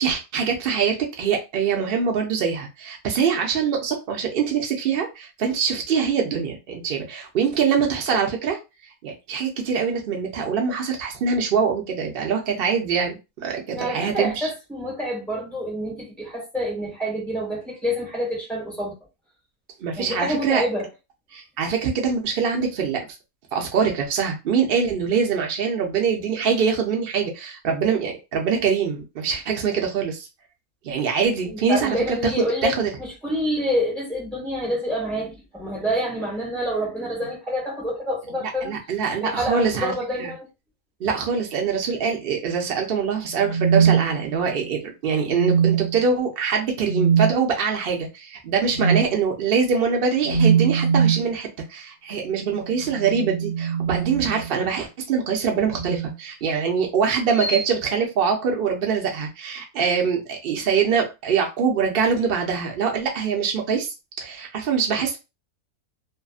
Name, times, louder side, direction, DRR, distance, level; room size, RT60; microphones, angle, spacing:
voice 1, 0.0-8.6 9.0-14.5 19.8-20.6 21.3-23.0 23.5-30.3 30.8-32.9 38.4-39.9 40.2-40.3 41.0-63.9 64.2-65.2, right 6 dB, 55° right, 0.7 m, -24 dB
voice 2, 13.7-18.9 19.9-20.9 31.4-38.7 39.2-40.5, equal, ahead, 1.4 m, -27 dB
sound 1, 43.3-44.6 45.3-46.0 46.8-47.3 48.7-49.1 50.2-51.3 52.8-54.6 55.7-56.1 57.4-57.6, right 7 dB, 75° left, 1.0 m, -22 dB
2.6 x 2.5 x 2.4 m
omnidirectional pair, 1.6 m